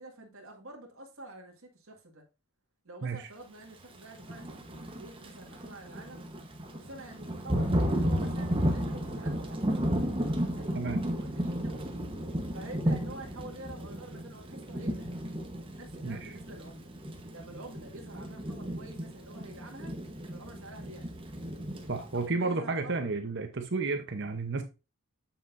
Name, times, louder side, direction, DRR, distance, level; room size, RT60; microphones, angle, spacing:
voice 1, 0.0-2.2 2.8-6.3 6.7-9.7 10.5-10.7 11.1-11.9 12.5-15.3 15.7-16.9 17.3-19.9 20.3-21.2 22.1-23.1, right 2 dB, 70° right, 1.9 m, -48 dB
Thunder / Rain, 4.1-22.2, equal, 25° right, 1.1 m, -33 dB
voice 2, 16.0-16.3 21.9-24.6, right 3 dB, 50° right, 0.8 m, -32 dB
7.5 x 6.8 x 2.6 m
head